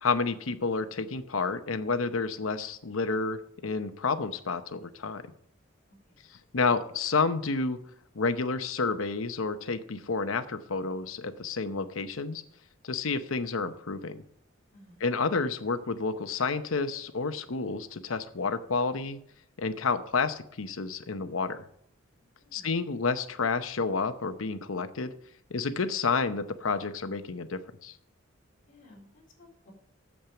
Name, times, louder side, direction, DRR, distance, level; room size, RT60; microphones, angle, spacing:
voice 1, 0.0-5.3 6.5-7.8 8.1-12.4 12.8-14.2 15.0-19.2 19.6-21.6 22.5-25.1 25.5-27.9, left 4 dB, 90° left, 11 dB, 0.8 m, -30 dB
voice 2, 14.7-15.0 22.2-22.8 28.7-29.7, left 1 dB, 40° left, -2 dB, 4.1 m, -57 dB
8.7 x 7.4 x 6.9 m, 0.69 s
head